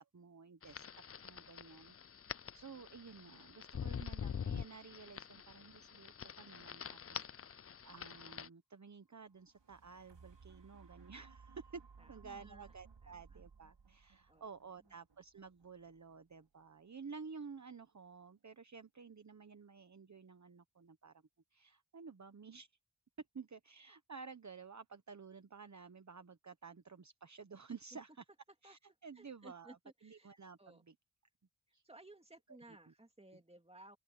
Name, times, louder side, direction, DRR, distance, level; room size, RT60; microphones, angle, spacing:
voice 1, 0.1-0.9 1.2-11.8 12.1-21.1 21.5-22.7 23.3-28.2 28.6-29.8 30.0-30.9 31.7-31.8, right 5 dB, 40° right, 1.1 m, -53 dB
sound 1, 0.6-8.5, left 7 dB, 35° left, 0.4 m, -46 dB
sound 2, 9.3-17.4 17.9-18.0, right 5 dB, 85° right, 3.8 m, -61 dB
voice 2, 12.0-12.7 13.0-13.4 14.3-14.5 14.8-15.0 28.6-28.8 29.1-30.3 30.6-30.8 31.8-34.0, right 1 dB, 15° right, 2.4 m, -59 dB
open air
wide cardioid pair, 80°, 42 cm